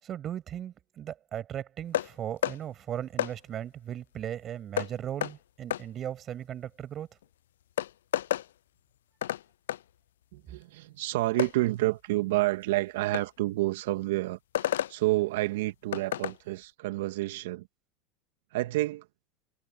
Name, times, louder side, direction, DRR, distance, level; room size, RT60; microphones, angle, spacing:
voice 1, 0.0-7.1, right 10 dB, 40° right, 7.7 m, -37 dB
sound 1, 1.9-2.1 2.4-2.6 3.2-3.3 4.8-4.9 5.2-5.3 5.7-5.8 7.2-7.3 7.8-8.5 9.2-9.4 9.7-9.8 11.4-11.5 13.1-13.3 14.5-14.9 15.9-16.4, left 12 dB, 80° left, 0.3 m, -29 dB
voice 2, 10.3-17.7 18.5-19.1, right 18 dB, 70° right, 2.0 m, -29 dB
hypercardioid pair, 90°, 0 cm